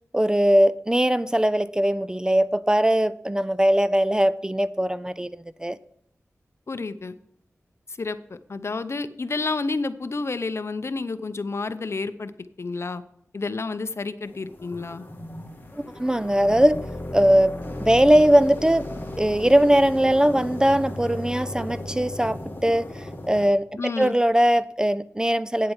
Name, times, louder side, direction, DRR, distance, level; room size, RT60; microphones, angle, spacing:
voice 1, 0.1-5.8 16.0-16.8 17.1-17.5 17.8-18.9 19.2-22.4 22.6-22.9 23.3-23.7 24.0-25.7, right 1 dB, 15° right, 0.4 m, -20 dB
voice 2, 6.7-7.2 7.9-12.3 12.6-13.0 13.3-15.0 23.8-24.1, left 3 dB, 55° left, 0.7 m, -30 dB
sound 1, 14.2-23.5, left 1 dB, 35° left, 2.2 m, -35 dB
9.1 x 7.6 x 5.6 m
wide cardioid pair, 65°, 6 cm